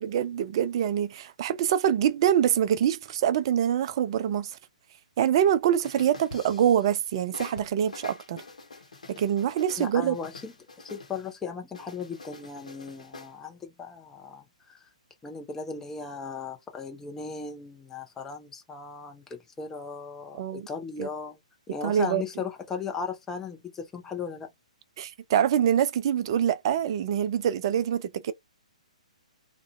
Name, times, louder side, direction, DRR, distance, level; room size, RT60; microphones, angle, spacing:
voice 1, 0.0-4.6 5.2-8.4 9.1-10.2 20.3-20.7 21.0-21.1 21.8-22.2 25.0-28.3, right 9 dB, 40° right, 0.3 m, -25 dB
sound 1, 5.8-7.0 7.3-11.3 11.7-13.3, left 3 dB, 65° left, 0.8 m, -45 dB
voice 2, 9.8-10.5 10.8-14.9 15.2-21.4 21.7-24.5, left 5 dB, 10° left, 0.5 m, -37 dB
2.4 x 2.1 x 2.4 m
figure-of-eight pair, 120°, 4 cm